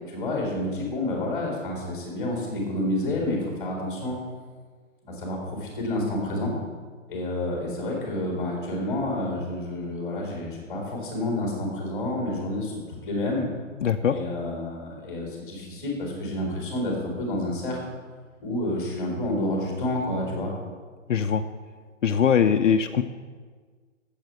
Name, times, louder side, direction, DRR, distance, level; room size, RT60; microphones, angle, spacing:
voice 1, 0.1-4.2 5.0-6.5 7.1-12.7 13.0-13.4 14.1-17.8 18.4-20.5, left 1 dB, 10° left, -1 dB, 1.8 m, -29 dB
voice 2, 13.8-14.1 21.1-21.4 22.0-23.0, left 7 dB, 65° left, 8 dB, 0.6 m, -21 dB
9.0 x 7.4 x 6.7 m, 1.5 s
hypercardioid pair, 175°, 40 cm